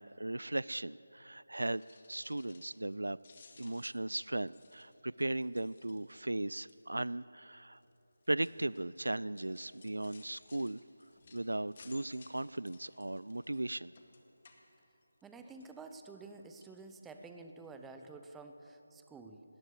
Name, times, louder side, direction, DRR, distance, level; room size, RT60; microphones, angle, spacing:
voice 1, 0.0-1.8 2.1-3.2 3.6-7.8 8.3-10.8 11.3-13.9, right 2 dB, 75° right, 20 dB, 0.4 m, -37 dB
sound 1, 1.7-2.9 3.2-6.3 6.7-7.0 7.8-15.3 15.6-16.3 16.6-16.8 17.3-17.4 17.6-17.7, left 4 dB, 35° left, 2.0 m, -61 dB
voice 2, 15.2-19.4, right 3 dB, 5° right, 5 dB, 0.8 m, -50 dB
19.5 x 17.5 x 7.7 m, 3.0 s
figure-of-eight pair, 160°, 0 cm